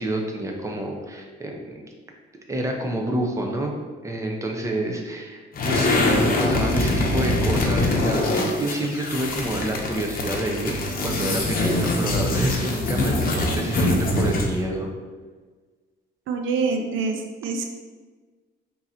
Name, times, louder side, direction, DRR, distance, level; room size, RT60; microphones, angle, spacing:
voice 1, 0.0-1.8 2.5-3.7 4.0-14.9, right 1 dB, 15° right, 1 dB, 0.7 m, -28 dB
sound 1, 5.5-14.6, left 2 dB, 45° left, 0.8 m, -23 dB
voice 2, 16.3-17.7, right 4 dB, 85° right, 4 dB, 0.5 m, -25 dB
3.7 x 2.8 x 4.3 m, 1.4 s
cardioid pair, 90°, 20 cm